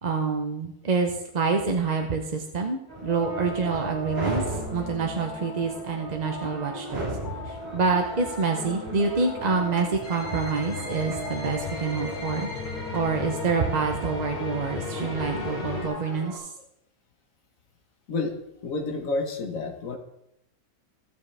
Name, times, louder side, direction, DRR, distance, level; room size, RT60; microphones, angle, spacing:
voice 1, 0.0-7.1 7.5-12.5 12.9-16.5, right 4 dB, 40° right, 3 dB, 0.6 m, -27 dB
sound 1, 2.9-16.4, right 2 dB, 15° right, 3.1 m, -37 dB
sound 2, 3.1-15.5, left 4 dB, 80° left, 1.3 m, -41 dB
sound 3, 10.0-15.9, left 3 dB, 30° left, 2.7 m, -35 dB
voice 2, 18.6-20.0, left 3 dB, 60° left, 4 dB, 1.6 m, -29 dB
15.5 x 6.7 x 3.3 m, 0.82 s
omnidirectional pair, 1.6 m